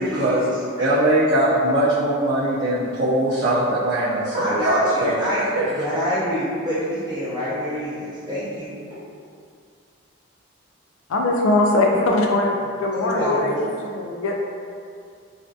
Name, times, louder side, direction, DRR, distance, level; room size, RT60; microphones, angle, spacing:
voice 1, 0.0-0.6 4.3-8.7 11.9-12.1 12.9-13.6, equal, 20° right, -11 dB, 0.6 m, -27 dB
voice 2, 0.8-5.6, right 1 dB, 60° right, -11 dB, 0.4 m, -21 dB
voice 3, 11.1-14.4, left 2 dB, 80° left, 0 dB, 0.4 m, -21 dB
2.5 x 2.4 x 2.2 m, 2.3 s
head